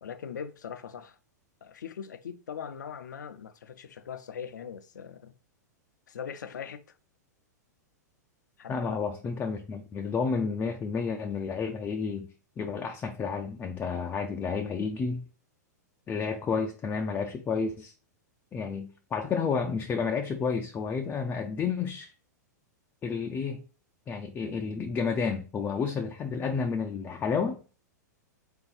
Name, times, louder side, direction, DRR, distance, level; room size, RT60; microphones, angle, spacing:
voice 1, 0.0-1.2 1.6-5.3 6.1-6.9 8.6-9.0, left 7 dB, 80° left, 0.5 m, -41 dB
voice 2, 8.7-12.3 12.6-15.3 16.1-17.9 18.5-22.1 23.0-23.6 24.1-27.7, left 5 dB, 20° left, 0.4 m, -31 dB
3.8 x 2.7 x 3.8 m
hypercardioid pair, 110°, 10 cm